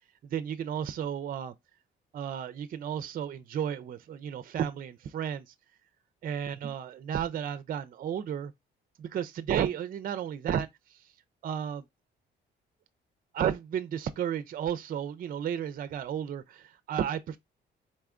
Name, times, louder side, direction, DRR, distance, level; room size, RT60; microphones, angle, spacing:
voice 1, 0.2-1.5 2.1-5.5 6.2-8.5 9.0-11.0 11.4-11.8 13.3-17.4, right 9 dB, 45° right, 0.4 m, -33 dB
4.2 x 3.3 x 2.4 m
cardioid pair, 90°, 20 cm